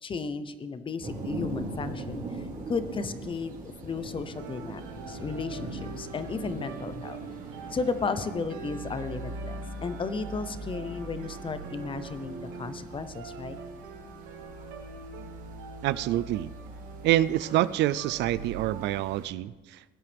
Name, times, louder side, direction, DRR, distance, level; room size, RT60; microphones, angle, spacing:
voice 1, 0.0-3.6 3.8-4.8 5.1-7.2 7.7-13.6, left 4 dB, 25° left, 12 dB, 0.8 m, -34 dB
sound 1, 1.0-19.3, right 2 dB, 40° right, 2.5 m, -41 dB
sound 2, 4.3-18.9, right 5 dB, 85° right, 1.4 m, -44 dB
voice 2, 15.8-16.5 17.0-19.8, right 14 dB, 65° right, 17 dB, 0.4 m, -26 dB
18.0 x 9.7 x 3.5 m, 1.2 s
cardioid pair, 120°, 20 cm